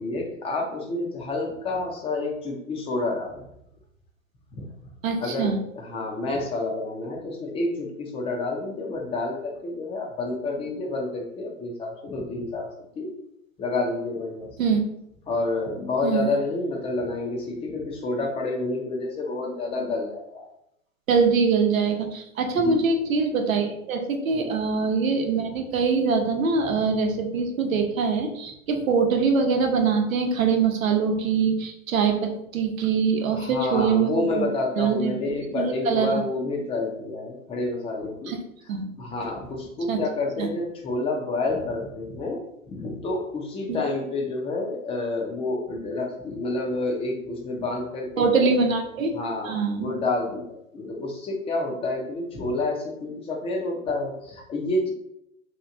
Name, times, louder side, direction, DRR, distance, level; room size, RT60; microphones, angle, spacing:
voice 1, 0.0-3.4 4.5-4.7 5.2-12.7 12.9-13.1 13.6-14.6 15.3-20.5 22.5-22.8 24.3-24.5 33.4-38.3 39.0-42.4 42.7-48.5 49.2-54.9, left 2 dB, 15° left, 1 dB, 0.5 m, -29 dB
voice 2, 5.0-5.6 14.6-14.8 16.0-16.3 21.1-34.4 34.8-35.1 35.5-36.2 38.3-38.4 38.7-38.9 39.9-40.0 40.4-40.5 43.7-43.8 48.2-49.1 49.4-49.9, right 5 dB, 75° right, 4 dB, 0.8 m, -23 dB
2.9 x 2.5 x 3.6 m, 0.80 s
hypercardioid pair, 115°, 40 cm